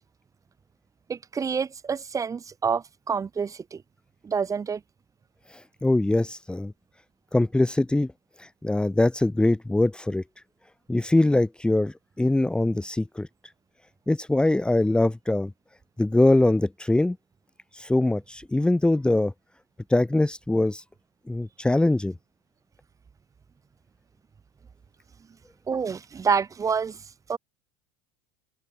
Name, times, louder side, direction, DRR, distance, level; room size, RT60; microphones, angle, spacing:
voice 1, 1.1-3.8 4.2-4.8 25.7-27.4, right 6 dB, 20° right, 2.6 m, -28 dB
voice 2, 5.8-6.7 7.3-8.1 8.4-10.2 10.9-13.3 14.1-15.5 16.0-17.2 17.7-19.3 19.9-20.8 21.3-22.1, left 2 dB, 5° left, 1.6 m, -22 dB
supercardioid pair, 115°, 15 cm